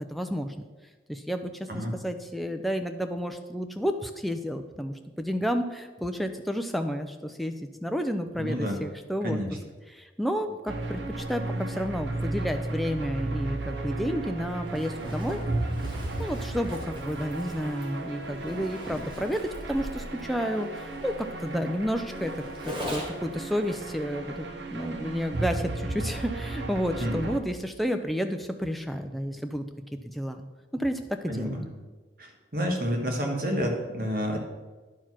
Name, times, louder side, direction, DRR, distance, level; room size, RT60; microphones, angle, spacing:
voice 1, 0.1-0.6 1.1-7.5 7.8-9.4 9.9-15.4 16.2-22.3 22.7-29.6 30.1-30.4 30.7-31.6, equal, ahead, 6 dB, 0.4 m, -31 dB
voice 2, 8.4-8.8 9.2-9.5 27.0-27.2 31.3-31.6 32.2-34.4, equal, 50° right, 2 dB, 1.4 m, -29 dB
sound 1, 10.7-27.4, right 2 dB, 75° right, 0.8 m, -34 dB
Zipper (clothing), 14.7-23.3, equal, 25° right, 1.6 m, -41 dB
10.0 x 4.7 x 5.9 m, 1.3 s
head